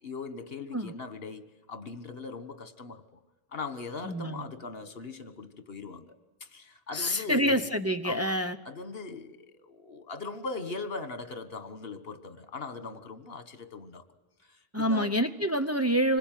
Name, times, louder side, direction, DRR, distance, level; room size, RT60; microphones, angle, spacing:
voice 1, 0.0-3.2 3.5-6.2 6.4-7.6 8.0-8.4 8.7-14.0 14.4-15.2, left 4 dB, 65° left, 1.7 m, -40 dB
voice 2, 4.0-4.4 6.9-8.6 14.7-16.2, equal, 15° right, 0.8 m, -27 dB
26.0 x 21.5 x 9.2 m
omnidirectional pair, 1.1 m